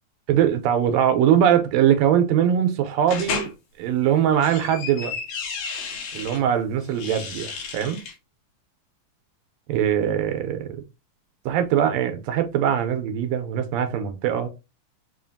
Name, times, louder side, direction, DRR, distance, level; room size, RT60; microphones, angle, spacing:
voice 1, 0.3-3.5 3.8-5.2 6.1-8.0 9.7-10.8 11.5-14.5, right 9 dB, 70° right, 1.8 m, -21 dB
sound 1, 3.1-3.5 4.2-6.4 6.9-8.1, left 6 dB, 85° left, 2.7 m, -32 dB
5.6 x 2.7 x 2.7 m
omnidirectional pair, 3.6 m